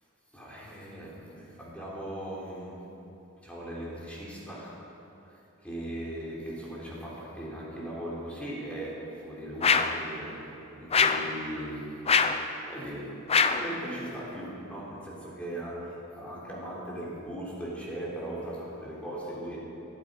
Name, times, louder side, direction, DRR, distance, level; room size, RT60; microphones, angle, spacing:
voice 1, 0.3-2.9 3.4-4.9 5.2-12.0 12.7-19.6, right 1 dB, 5° left, -6 dB, 3.6 m, -39 dB
sound 1, 9.6-10.0 10.9-11.3 12.1-12.4 13.3-13.7, left 5 dB, 30° left, 0.6 m, -23 dB
21.5 x 12.0 x 5.2 m, 2.9 s
head